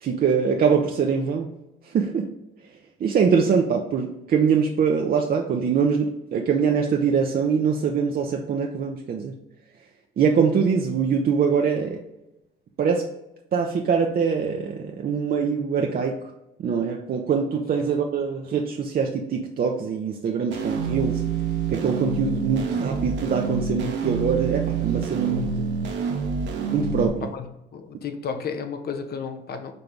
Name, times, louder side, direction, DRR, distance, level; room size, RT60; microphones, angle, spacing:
voice 1, 0.0-1.5 1.8-2.3 3.0-9.4 10.2-12.0 12.8-13.1 13.5-16.3 16.6-21.2 21.7-25.8 26.7-27.3, right 6 dB, 50° right, 0.6 m, -23 dB
sound 1, 20.5-27.1, right 5 dB, 65° right, 0.9 m, -27 dB
voice 2, 27.7-29.7, left 6 dB, 55° left, 0.7 m, -32 dB
5.3 x 2.8 x 3.5 m
supercardioid pair, 55°, 20 cm